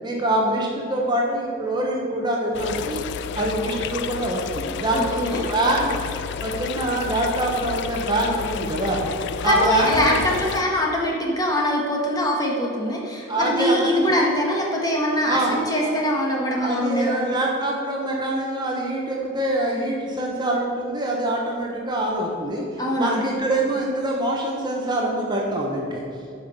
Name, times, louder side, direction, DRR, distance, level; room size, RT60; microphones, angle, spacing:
voice 1, 0.0-3.0 3.3-6.0 6.4-9.0 9.4-10.2 13.3-14.1 15.2-15.9 16.5-26.0, right 1 dB, 20° right, -1 dB, 1.0 m, -24 dB
sound 1, 2.5-10.6, left 7 dB, 55° left, 0.3 m, -31 dB
voice 2, 4.9-5.5 9.4-17.2 22.8-23.2, equal, 20° left, -2 dB, 1.3 m, -23 dB
9.4 x 5.6 x 5.4 m, 2.6 s
head